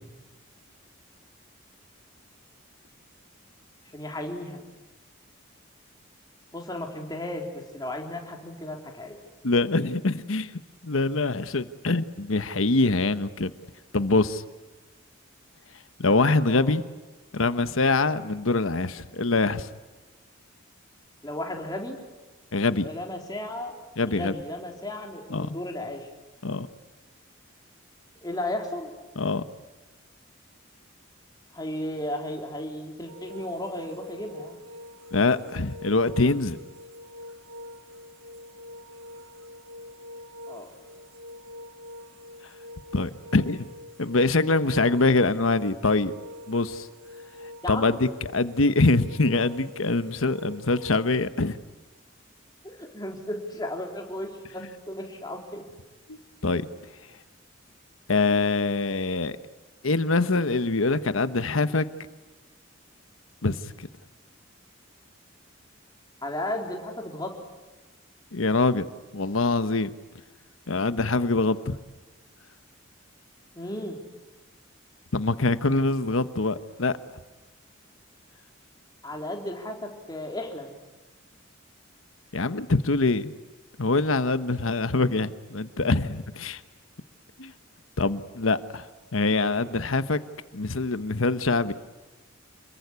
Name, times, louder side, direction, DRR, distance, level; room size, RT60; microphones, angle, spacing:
voice 1, 3.9-4.6 6.5-7.5 7.7-9.2 16.5-16.7 21.2-22.0 22.8-23.7 24.1-26.1 28.2-28.9 31.5-34.6 40.5-40.7 47.6-48.1 52.6-55.6 66.2-67.3 73.6-74.0 79.0-80.7, left 1 dB, 20° left, 1 dB, 3.9 m, -34 dB
voice 2, 9.4-10.5 10.8-13.5 13.9-14.4 16.0-16.8 17.3-19.7 22.5-22.9 24.0-24.3 25.3-25.5 26.4-26.7 29.2-29.4 35.1-36.6 42.9-43.7 44.0-46.1 46.5-46.9 47.7-51.6 56.1-56.6 58.1-59.3 59.8-61.9 63.4-63.9 68.3-68.8 69.1-69.9 70.7-71.8 75.1-77.0 82.3-83.3 83.8-86.6 87.4-87.5 88.0-88.8 89.1-90.2 90.5-91.7, left 3 dB, 85° left, 12 dB, 1.2 m, -24 dB
sound 1, 33.1-51.3, left 1 dB, 75° right, 1.1 m, -45 dB
28.0 x 22.0 x 9.6 m, 1.2 s
head